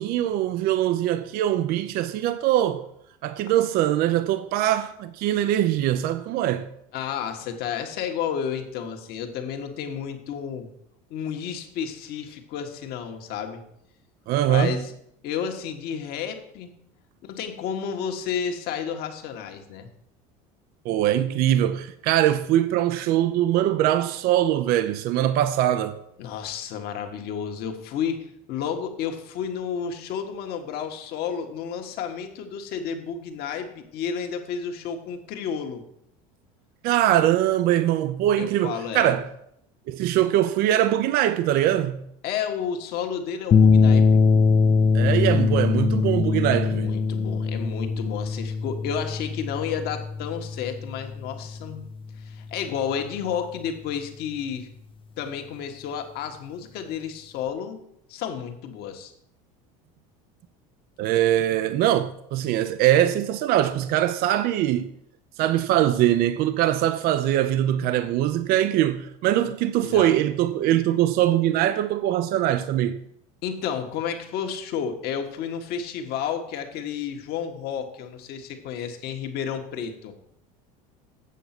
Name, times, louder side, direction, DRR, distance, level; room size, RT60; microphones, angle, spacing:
voice 1, 0.0-2.9 3.2-6.7 14.3-14.8 20.8-26.0 36.8-39.3 39.9-42.0 44.9-46.9 61.0-64.9 65.4-73.0, right 12 dB, 55° right, 0.6 m, -22 dB
voice 2, 6.9-10.7 11.1-13.6 14.4-14.9 15.2-16.7 17.2-19.9 26.2-35.8 38.4-39.2 42.2-44.1 46.5-51.8 52.2-54.7 55.2-57.8 58.1-59.1 69.8-70.1 73.4-80.1, left 7 dB, 60° left, 1.7 m, -31 dB
sound 1, 43.5-52.0, left 5 dB, 30° left, 0.6 m, -22 dB
8.3 x 6.9 x 6.0 m
supercardioid pair, 105°, 18 cm